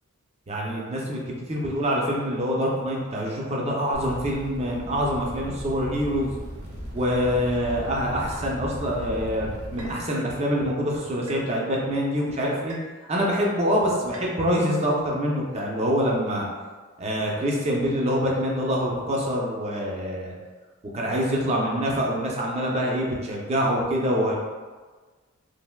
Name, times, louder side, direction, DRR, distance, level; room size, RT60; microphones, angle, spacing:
voice 1, 0.5-6.3 6.9-12.8 13.1-16.5 17.0-20.3 20.9-24.4, equal, 30° right, -2 dB, 0.5 m, -25 dB
sound 1, 3.9-9.9, equal, 65° right, 0.9 m, -37 dB
sound 2, 8.3-8.5 9.8-10.0 11.3-11.5 12.7-13.0 14.1-14.3, right 1 dB, 80° right, 0.6 m, -43 dB
3.3 x 2.5 x 2.2 m, 1.4 s
head